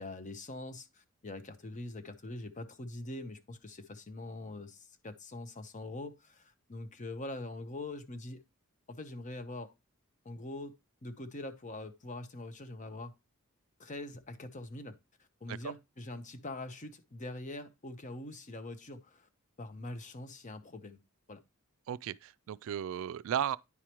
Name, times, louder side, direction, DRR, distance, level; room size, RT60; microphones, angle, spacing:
voice 1, 0.0-8.4 8.9-9.7 10.2-10.8 11.0-13.1 13.8-15.0 15.4-19.3 19.6-21.0 21.3-21.4, left 2 dB, 35° left, 0.9 m, -43 dB
voice 2, 21.9-23.6, right 9 dB, 65° right, 0.3 m, -35 dB
9.7 x 4.9 x 3.0 m
head